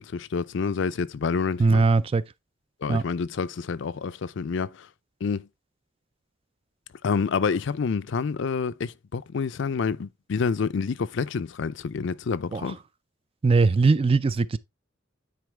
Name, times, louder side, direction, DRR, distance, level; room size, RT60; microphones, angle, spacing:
voice 1, 0.0-1.9 2.8-4.9 5.2-5.5 7.0-12.8, left 5 dB, 65° left, 0.4 m, -28 dB
voice 2, 1.6-2.2 2.9-3.0 12.5-12.7 13.4-14.6, right 3 dB, 30° right, 0.3 m, -20 dB
9.3 x 4.3 x 3.3 m
head